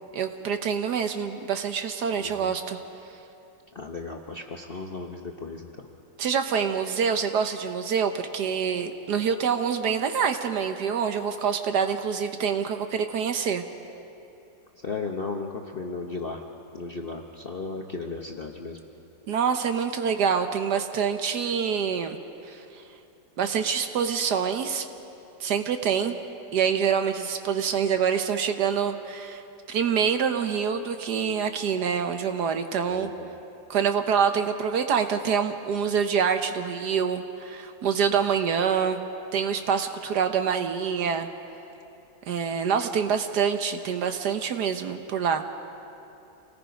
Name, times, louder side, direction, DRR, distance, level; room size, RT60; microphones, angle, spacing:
voice 1, 0.1-2.8 6.2-13.6 19.3-22.2 22.5-22.6 23.4-24.8 25.4-26.1 26.5-29.4 29.7-33.1 33.7-39.0 39.3-41.3 42.3-45.4, right 7 dB, 65° right, 7 dB, 1.4 m, -26 dB
voice 2, 2.2-2.5 3.7-5.7 14.8-16.4 16.7-18.8 32.9-33.3, left 3 dB, 45° left, 2 dB, 0.8 m, -35 dB
27.5 x 18.0 x 5.2 m, 2.8 s
omnidirectional pair, 2.0 m